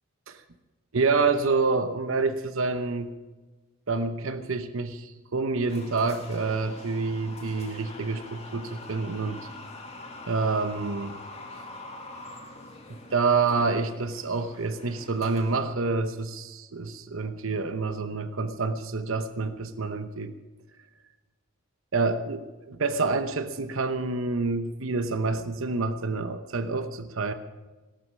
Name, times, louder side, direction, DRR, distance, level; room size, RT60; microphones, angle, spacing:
voice 1, 0.9-3.1 3.9-9.5 10.3-11.2 13.1-20.3 21.9-27.3, right 4 dB, 70° right, 9 dB, 0.9 m, -27 dB
sound 1, 5.7-15.7, left 2 dB, 30° left, 2.0 m, -44 dB
17.5 x 13.0 x 6.3 m, 1.2 s
head